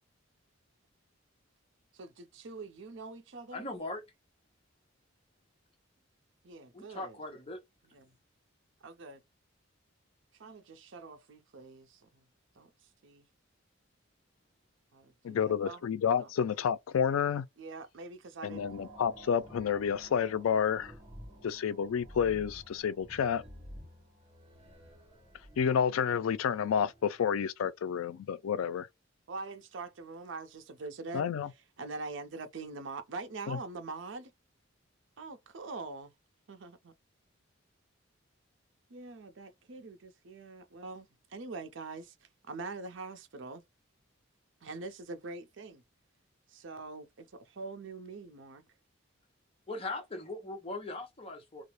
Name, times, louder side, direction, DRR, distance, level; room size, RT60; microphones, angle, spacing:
voice 1, 1.9-3.7 6.4-7.2 7.9-8.1 8.8-9.2 10.4-12.1 12.6-12.7 13.0-13.3 14.9-15.8 16.2-16.3 17.6-18.7 29.3-31.3 31.8-34.3 35.2-36.1 36.5-36.9 38.9-42.1 42.5-43.6 44.6-45.8 46.5-48.6, right 3 dB, 65° right, 0.5 m, -44 dB
voice 2, 3.5-4.0 6.7-7.6 49.7-51.6, left 2 dB, 30° left, 0.7 m, -39 dB
voice 3, 15.2-17.5 18.4-20.9 21.4-23.4 25.6-28.9 31.1-31.5 33.5-33.6, left 7 dB, 90° left, 0.3 m, -30 dB
sound 1, 18.5-27.3, right 1 dB, 25° right, 1.0 m, -52 dB
2.3 x 2.0 x 2.9 m
head